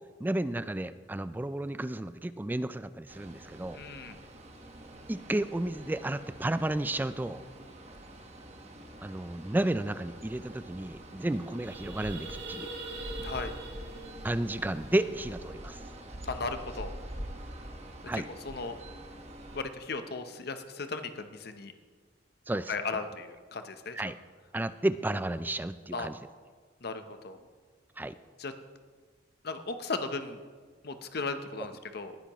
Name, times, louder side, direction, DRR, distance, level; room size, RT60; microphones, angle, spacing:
voice 1, 0.2-3.8 5.1-7.4 9.0-12.7 14.2-15.8 18.1-18.3 22.5-22.7 23.9-24.2 24.5-26.2 28.0-28.1, right 1 dB, 10° right, 13 dB, 0.3 m, -32 dB
sound 1, 3.1-19.6, right 1 dB, 35° right, 1.3 m, -45 dB
voice 2, 3.7-4.2 13.2-13.5 16.3-17.0 18.1-18.8 19.5-21.7 22.7-24.1 25.9-26.1 26.8-27.4 28.4-28.5 29.4-30.4 30.8-32.2, left 4 dB, 60° left, 8 dB, 0.8 m, -36 dB
sound 2, 10.3-10.4 10.6-10.8 11.2-15.5, right 2 dB, 70° right, 2.3 m, -44 dB
19.5 x 10.0 x 3.0 m, 1.5 s
head